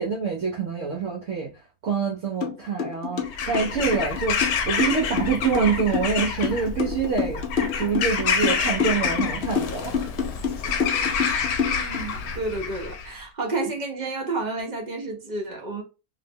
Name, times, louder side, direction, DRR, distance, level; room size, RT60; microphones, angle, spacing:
voice 1, 0.0-1.5 1.8-10.1, right 5 dB, 60° right, 1.0 m, -26 dB
sound 1, 2.4-2.5 2.8-12.0, left 6 dB, 55° left, 0.8 m, -27 dB
Bird vocalization bird call bird song / Crow, 3.2-13.1, left 6 dB, 75° left, 1.1 m, -28 dB
voice 2, 11.7-15.8, right 2 dB, 40° right, 0.7 m, -30 dB
3.1 x 2.7 x 2.6 m
omnidirectional pair, 1.6 m